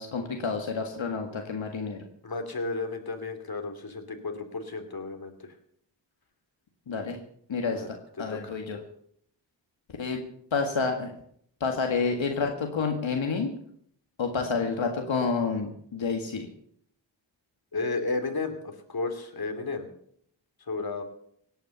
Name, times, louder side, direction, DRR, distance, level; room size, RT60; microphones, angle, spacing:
voice 1, 0.0-2.0 6.9-7.2 7.5-8.8 10.0-10.2 10.5-11.1 11.6-13.5 14.2-16.5, left 4 dB, 85° left, 3 dB, 1.9 m, -29 dB
voice 2, 2.2-5.3 7.7-7.9 8.3-8.5 17.7-19.9 20.7-21.0, left 3 dB, 50° left, 6 dB, 2.9 m, -33 dB
17.5 x 9.1 x 7.0 m, 0.66 s
cardioid pair, 60°, 45 cm